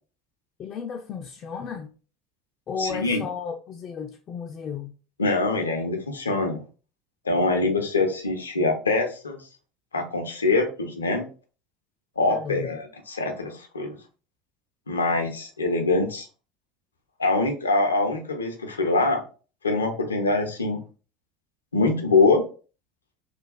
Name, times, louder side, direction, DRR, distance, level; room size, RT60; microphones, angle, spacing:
voice 1, 0.6-1.9 2.7-4.9 12.3-12.7, left 6 dB, 40° left, 0.5 m, -34 dB
voice 2, 2.8-3.2 5.2-6.6 7.2-9.4 9.9-11.3 12.2-14.0 14.9-16.3 17.2-19.2 19.6-20.8 21.7-22.4, left 3 dB, 85° left, 0.6 m, -24 dB
3.2 x 2.3 x 3.9 m
figure-of-eight pair, 70°, 0 cm